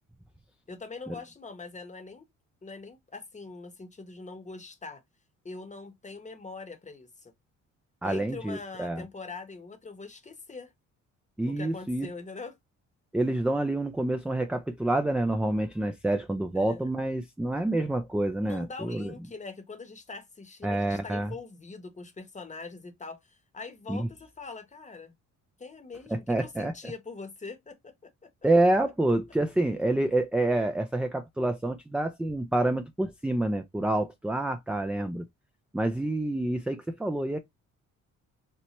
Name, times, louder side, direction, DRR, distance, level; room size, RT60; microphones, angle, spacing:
voice 1, 0.7-2.3 2.6-5.0 5.4-7.3 8.0-10.7 11.5-12.6 16.5-16.9 18.4-25.1 25.6-28.3, left 4 dB, 25° left, 0.9 m, -43 dB
voice 2, 8.0-9.0 11.4-12.1 13.1-19.1 20.6-21.3 23.9-24.1 26.1-26.7 28.4-35.2 35.7-37.4, right 1 dB, 5° right, 0.3 m, -27 dB
4.3 x 2.1 x 2.9 m
cardioid pair, 90°, 30 cm